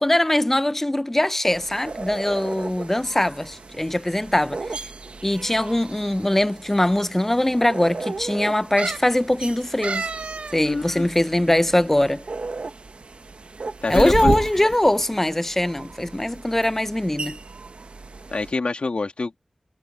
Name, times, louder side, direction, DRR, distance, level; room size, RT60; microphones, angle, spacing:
voice 1, 0.0-4.9 5.2-10.1 10.5-12.2 13.9-17.4, left 1 dB, 15° left, 0.4 m, -22 dB
sound 1, 1.5-18.5, right 3 dB, 70° right, 1.1 m, -34 dB
sound 2, 5.3-5.9 6.7-6.8 7.1-7.2 8.8-9.1 9.8-10.6 10.9-11.0, right 4 dB, 90° right, 0.8 m, -31 dB
voice 2, 10.6-11.1 13.8-14.4 18.3-19.4, left 3 dB, 70° left, 2.4 m, -25 dB
wide cardioid pair, 80°, 2 cm